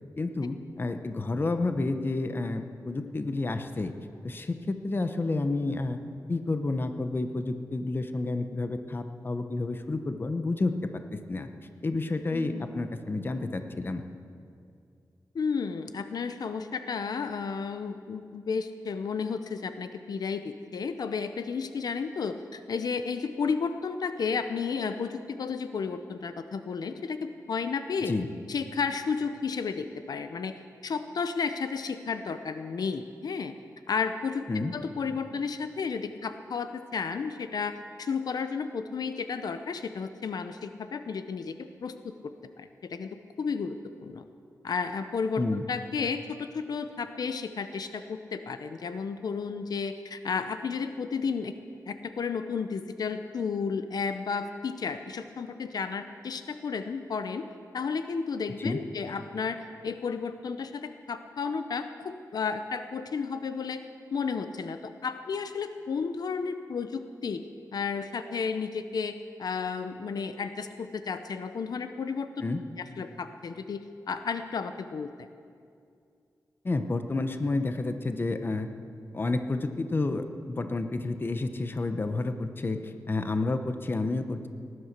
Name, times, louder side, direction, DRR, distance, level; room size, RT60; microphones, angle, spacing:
voice 1, 0.2-3.9 4.2-6.0 6.3-11.5 11.8-14.0 28.1-28.3 34.5-34.7 45.4-45.6 58.6-58.8 72.4-72.6 76.6-78.7 79.1-84.5, left 2 dB, 30° left, 8 dB, 0.9 m, -30 dB
voice 2, 12.3-12.7 15.3-28.1 28.5-33.5 33.9-34.4 34.7-44.2 44.6-45.4 45.7-51.5 51.9-57.4 57.7-63.8 64.1-67.4 67.7-72.3 72.8-73.8 74.1-75.3, left 5 dB, 75° left, 9 dB, 0.7 m, -32 dB
18.5 x 11.0 x 6.7 m, 2.4 s
wide cardioid pair, 125°, 7 cm